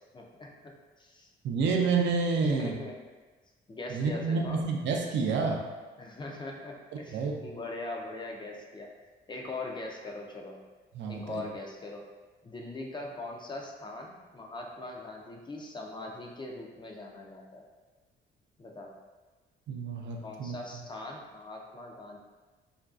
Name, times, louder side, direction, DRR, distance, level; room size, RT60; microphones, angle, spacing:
voice 1, 0.1-0.5 1.0-1.3 2.4-3.0 3.7-4.6 6.0-8.9 9.3-10.6 11.1-12.1 12.4-17.6 18.6-18.9 20.2-22.2, left 2 dB, 25° left, 0 dB, 0.3 m, -41 dB
voice 2, 1.4-2.7 3.9-5.6 7.1-7.3 10.9-11.4 19.7-20.6, right 4 dB, 65° right, 1 dB, 0.4 m, -29 dB
2.5 x 2.2 x 2.3 m, 1.3 s
cardioid pair, 90°, 20 cm